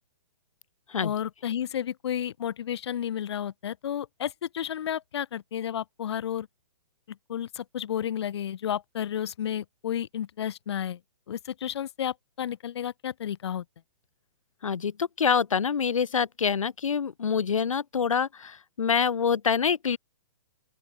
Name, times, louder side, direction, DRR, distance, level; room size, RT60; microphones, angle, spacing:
voice 1, 1.0-6.5 7.3-11.0 11.3-13.6, left 9 dB, 55° left, 2.0 m, -32 dB
voice 2, 14.6-20.0, left 6 dB, 90° left, 2.7 m, -26 dB
open air
hypercardioid pair, 160°, 16 cm